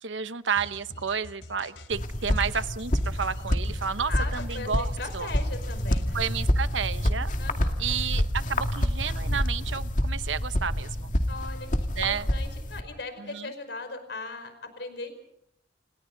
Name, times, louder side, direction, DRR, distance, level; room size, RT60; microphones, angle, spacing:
voice 1, 0.0-5.3 6.1-7.3 7.8-11.1 12.0-12.3 13.2-13.5, right 6 dB, 90° right, 13 dB, 1.0 m, -31 dB
sound 1, 0.6-6.0, left 2 dB, 85° left, 3.3 m, -46 dB
sound 2, 1.9-12.8, equal, 45° left, 2.3 m, -28 dB
voice 2, 4.0-6.2 7.4-7.8 11.3-15.2, left 3 dB, 60° left, 8 dB, 5.2 m, -39 dB
30.0 x 29.0 x 4.0 m, 0.75 s
head